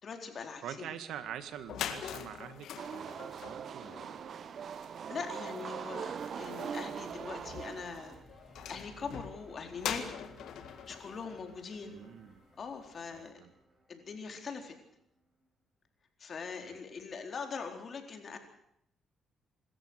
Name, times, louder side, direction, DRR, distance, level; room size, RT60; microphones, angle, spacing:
voice 1, 0.0-0.9 5.1-8.2 8.7-10.3 10.9-12.0 12.6-13.3 13.9-14.8 16.2-18.4, left 5 dB, 50° left, 5 dB, 4.1 m, -42 dB
voice 2, 0.6-4.2 11.9-12.4 13.1-13.5 16.6-16.8, right 9 dB, 80° right, 11 dB, 1.9 m, -45 dB
sound 1, 1.3-1.4 1.6-12.4, left 9 dB, 75° left, 2.0 m, -44 dB
sound 2, 2.8-8.2, right 7 dB, 55° right, 1.0 m, -41 dB
sound 3, 6.4-15.5, equal, 15° right, 8.0 m, -60 dB
26.0 x 13.5 x 8.1 m, 0.74 s
cardioid pair, 90°, 0 cm